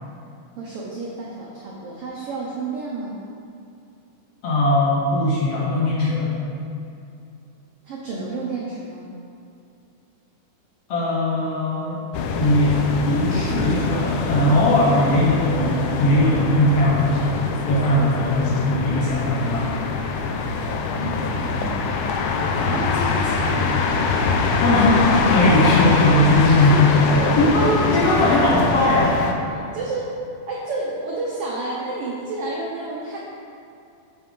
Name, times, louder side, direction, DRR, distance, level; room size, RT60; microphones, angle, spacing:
voice 1, 0.6-3.2 7.8-9.1 20.8-22.0 22.6-23.7 26.4-27.6 29.7-30.1 30.5-33.2, right 3 dB, 85° right, -4 dB, 1.2 m, -30 dB
voice 2, 4.4-6.3 10.9-12.0 12.3-17.2 17.6-19.9 24.6-26.9 27.4-29.1, left 1 dB, 65° left, -5 dB, 1.7 m, -19 dB
sound 1, 12.1-29.3, left 4 dB, 80° left, 2.1 m, -23 dB
Brass instrument, 25.7-30.0, left 4 dB, 45° left, 1.5 m, -36 dB
8.6 x 5.6 x 3.8 m, 2.6 s
omnidirectional pair, 3.7 m